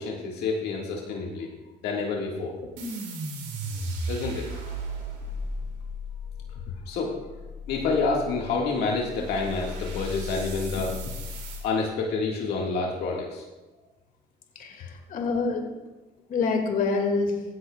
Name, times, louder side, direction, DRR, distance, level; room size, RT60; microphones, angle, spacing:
voice 1, 0.0-1.5 1.8-2.6 4.1-4.8 6.4-7.2 7.7-10.9 11.6-13.4, left 4 dB, 80° left, -1 dB, 1.8 m, -28 dB
sound 1, 2.8-11.6, left 1 dB, 90° right, 2.6 m, -35 dB
voice 2, 14.6-15.7 16.3-17.3, left 4 dB, 55° left, 2 dB, 2.1 m, -26 dB
16.0 x 11.0 x 2.3 m, 1.1 s
cardioid pair, 110°, 17 cm